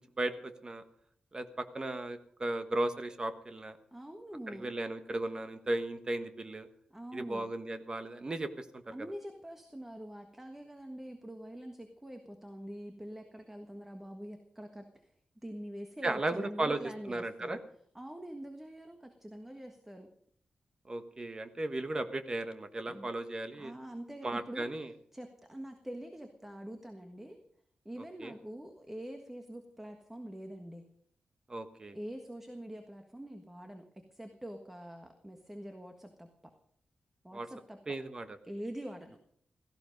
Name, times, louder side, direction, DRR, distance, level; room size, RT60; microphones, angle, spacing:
voice 1, 0.2-0.8 1.3-3.8 4.5-6.7 7.1-9.1 16.0-16.8 17.1-17.6 20.9-23.7 24.2-24.9 28.2-28.3 31.5-32.0 37.3-37.5 37.9-38.4, right 2 dB, 30° right, 9 dB, 1.4 m, -36 dB
voice 2, 3.9-4.7 6.9-7.5 8.9-15.1 15.4-17.6 17.9-20.1 22.9-23.1 23.6-24.7 25.1-27.4 27.8-30.9 31.9-36.5 37.2-37.8 38.4-39.2, right 1 dB, 10° right, 5 dB, 1.5 m, -45 dB
17.0 x 15.0 x 5.3 m, 0.63 s
wide cardioid pair, 140°, 3 cm